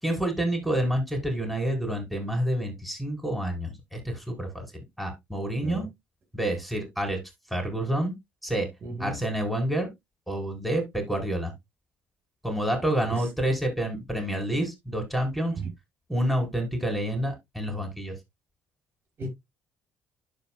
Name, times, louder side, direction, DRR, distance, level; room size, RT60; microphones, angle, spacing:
voice 1, 0.0-4.6 5.0-5.8 6.3-7.2 7.5-8.1 8.4-8.7 9.0-9.9 10.3-11.5 12.4-15.6 16.1-18.1, right 1 dB, ahead, 4.5 m, -28 dB
voice 2, 8.8-9.2 13.1-13.3 15.6-15.7 19.2-19.3, right 3 dB, 45° right, 5.7 m, -34 dB
12.0 x 4.8 x 2.3 m
supercardioid pair, 65°, 5 cm